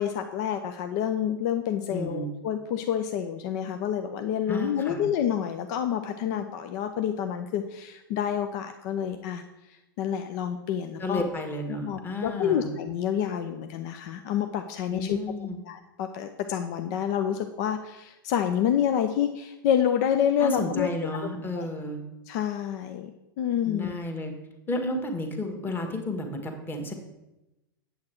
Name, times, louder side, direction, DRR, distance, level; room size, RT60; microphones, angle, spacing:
voice 1, 0.0-9.4 10.0-11.2 11.7-15.2 15.7-20.9 21.6-21.7 22.3-23.1 23.4-23.9, left 9 dB, 45° left, 7 dB, 0.6 m, -28 dB
voice 2, 1.9-2.3 4.5-5.0 11.0-12.7 14.8-15.6 20.4-22.0 23.6-24.3 24.7-26.9, left 1 dB, 15° left, 4 dB, 1.6 m, -32 dB
8.4 x 7.8 x 4.6 m, 0.97 s
figure-of-eight pair, 100°, 12 cm